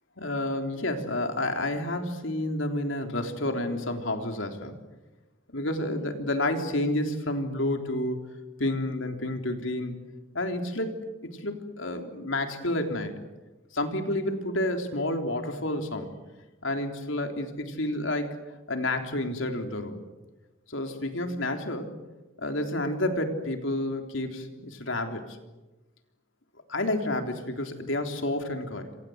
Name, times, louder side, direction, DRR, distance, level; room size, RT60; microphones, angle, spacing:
voice 1, 0.2-4.8 5.5-8.2 8.6-10.0 10.3-11.0 11.3-13.1 13.7-16.1 16.6-18.4 18.7-20.0 20.7-21.9 22.4-25.4 26.7-28.9, left 1 dB, 70° left, 5 dB, 3.6 m, -30 dB
28.0 x 26.0 x 8.0 m, 1.1 s
head